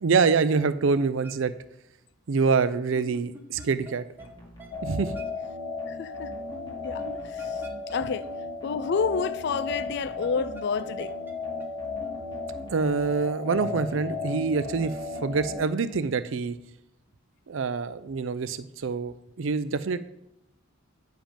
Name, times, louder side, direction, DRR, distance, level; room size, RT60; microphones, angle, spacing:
voice 1, 0.0-1.5 2.3-4.0 4.8-5.1 7.1-7.2 12.7-16.5 17.5-20.0, right 4 dB, 65° right, 0.5 m, -26 dB
sound 1, 0.7-0.8 1.2-1.3 2.9-3.9 4.2-4.3 4.6-4.7 5.1-5.2 6.5-8.3 8.6-8.7 9.2-9.3 9.9-11.3 11.6-11.7 12.0-12.1 12.5-12.6 13.4-14.9 15.1-15.2 15.6-15.7 16.1-16.2, equal, 10° right, 0.9 m, -45 dB
sound 2, 4.2-16.0, left 1 dB, 20° left, 1.8 m, -45 dB
sound 3, 4.7-15.6, left 3 dB, 90° left, 2.2 m, -35 dB
voice 2, 5.9-6.3 6.8-8.3 8.6-11.1, left 5 dB, 55° left, 0.4 m, -30 dB
9.0 x 5.1 x 5.1 m
head